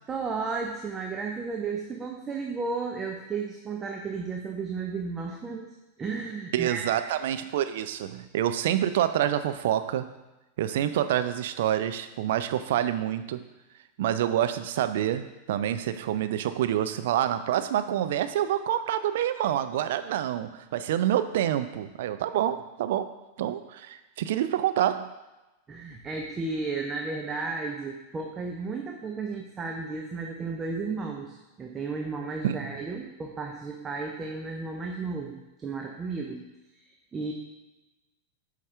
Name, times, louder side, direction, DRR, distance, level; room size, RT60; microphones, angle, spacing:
voice 1, 0.1-5.7 6.0-6.9 25.7-36.5 37.1-37.3, right 4 dB, 20° right, 2 dB, 0.7 m, -33 dB
voice 2, 6.5-10.1 10.6-13.4 14.0-23.1 23.4-25.1 32.4-32.7, right 11 dB, 55° right, 11 dB, 0.4 m, -27 dB
8.4 x 4.9 x 3.3 m, 1.0 s
figure-of-eight pair, 90°, 0 cm